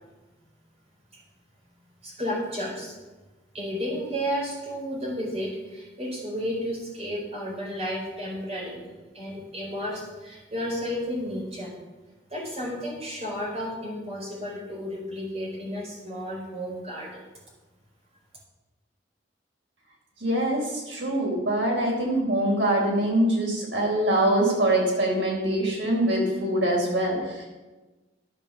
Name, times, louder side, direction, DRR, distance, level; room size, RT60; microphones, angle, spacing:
voice 1, 2.0-2.9 3.5-8.9 9.1-11.7 12.3-17.2, equal, 35° right, -2 dB, 4.0 m, -32 dB
voice 2, 20.2-27.5, right 1 dB, 90° right, -1 dB, 4.0 m, -24 dB
11.0 x 7.0 x 6.9 m, 1.2 s
head